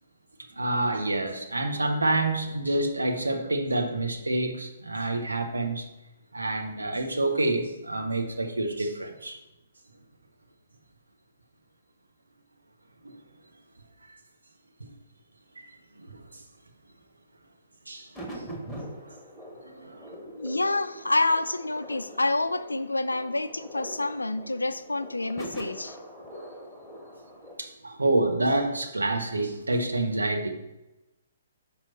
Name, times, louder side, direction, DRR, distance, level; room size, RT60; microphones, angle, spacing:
voice 1, 0.6-5.9 6.3-9.4 13.0-13.2 14.8-14.9 15.6-16.4 17.9-18.1 18.3-18.5 19.0-19.2 19.6-20.1 26.2-26.6 27.6-30.5, right 2 dB, 75° right, 5 dB, 0.8 m, -28 dB
sound 1, 18.1-27.6, equal, 5° left, 0.9 m, -43 dB
voice 2, 20.4-26.0, left 2 dB, 75° left, 11 dB, 0.4 m, -28 dB
5.5 x 4.5 x 4.3 m, 0.97 s
figure-of-eight pair, 125°, 0 cm